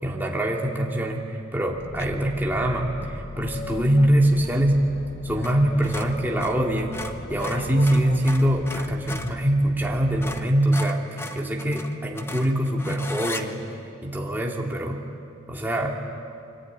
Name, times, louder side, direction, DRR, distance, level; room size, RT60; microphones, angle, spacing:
voice 1, 0.0-4.8 5.2-11.0 11.3-13.7 14.0-15.1 15.5-16.0, right 1 dB, 10° right, -1 dB, 2.6 m, -23 dB
Boat Water vehicle, 1.7-10.5, left 2 dB, 30° left, 0.9 m, -38 dB
sound 1, 2.0-2.3 5.4-5.6 5.8-9.4 9.8-9.9 10.2-13.5, left 2 dB, 10° left, 1.1 m, -36 dB
24.5 x 24.5 x 9.8 m, 2.5 s
head